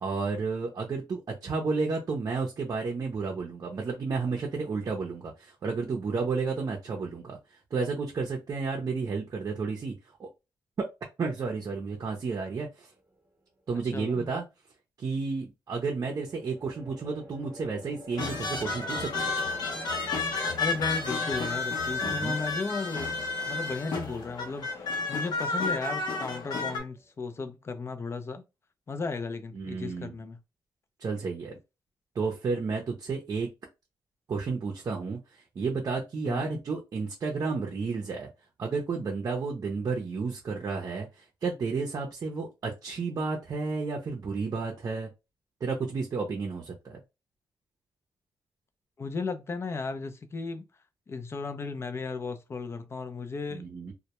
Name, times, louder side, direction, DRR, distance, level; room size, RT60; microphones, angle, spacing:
voice 1, 0.0-7.4 7.7-9.9 10.2-10.3 10.8-10.9 11.2-12.9 13.7-14.4 15.0-19.3 22.0-22.4 29.5-30.1 31.0-31.6 32.1-33.5 34.3-35.2 35.6-38.3 38.6-45.1 45.6-47.0 53.5-53.9, right 4 dB, 50° right, 0.5 m, -32 dB
sound 1, 12.9-13.5 16.0-27.4, equal, 20° right, 0.9 m, -50 dB
voice 2, 13.9-14.3 20.6-28.4 28.9-30.4 36.2-36.6 49.0-50.7 51.1-53.7, left 4 dB, 35° left, 0.4 m, -35 dB
sound 2, 18.2-26.8, left 3 dB, 70° left, 0.8 m, -31 dB
2.1 x 2.1 x 2.8 m
cardioid pair, 100°, 8 cm